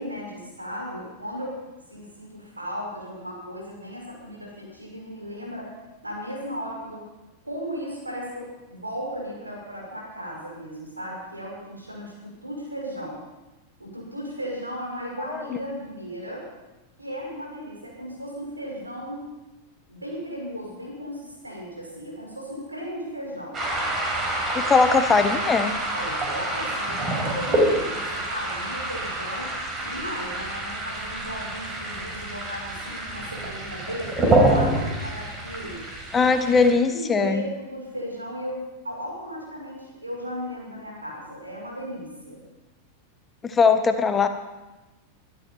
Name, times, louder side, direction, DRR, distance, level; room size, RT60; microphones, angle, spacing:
voice 1, 0.0-1.6 1.9-5.7 6.0-7.0 7.4-13.2 13.8-16.4 17.0-19.3 19.9-23.6 25.9-29.5 29.8-35.8 36.2-36.6 36.9-42.4, equal, 80° right, -2 dB, 6.4 m, -36 dB
sound 1, 23.5-36.7, right 1 dB, 25° right, 5.0 m, -27 dB
voice 2, 24.5-25.7 34.2-34.8 36.1-37.4 43.4-44.3, left 5 dB, 20° left, 9 dB, 1.2 m, -20 dB
24.0 x 12.5 x 4.6 m, 1.1 s
figure-of-eight pair, 90°, 0 cm